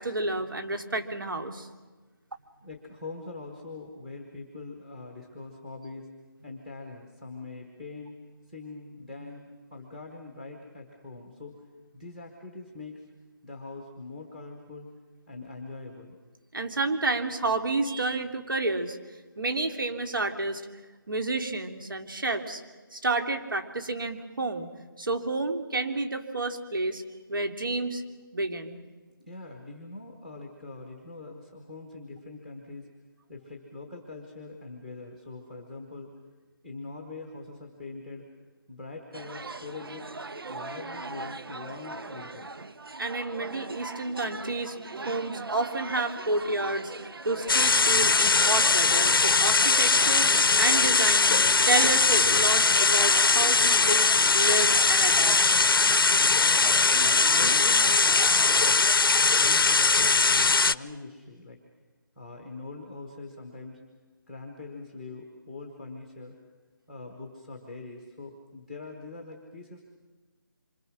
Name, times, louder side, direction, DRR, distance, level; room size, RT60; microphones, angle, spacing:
voice 1, 0.0-1.7 16.5-19.0 19.4-20.6 21.1-22.6 22.9-24.7 25.0-27.0 27.3-28.0 28.3-28.8 43.0-44.8 45.0-51.3 51.7-55.4, right 2 dB, 65° right, 6 dB, 3.1 m, -30 dB
voice 2, 2.6-6.1 6.4-8.1 8.5-11.5 11.9-13.1 13.4-14.9 15.3-16.2 29.2-32.9 33.3-36.1 36.6-38.2 38.7-40.1 40.5-42.6 56.1-58.9 59.3-61.6 62.1-63.8 64.3-66.3 66.9-69.8, left 3 dB, ahead, 2 dB, 1.0 m, -43 dB
sound 1, 39.1-58.7, right 3 dB, 85° right, 1.1 m, -40 dB
sound 2, 47.5-60.7, left 4 dB, 75° left, 0.8 m, -21 dB
26.5 x 25.0 x 6.2 m, 1.3 s
figure-of-eight pair, 180°, 12 cm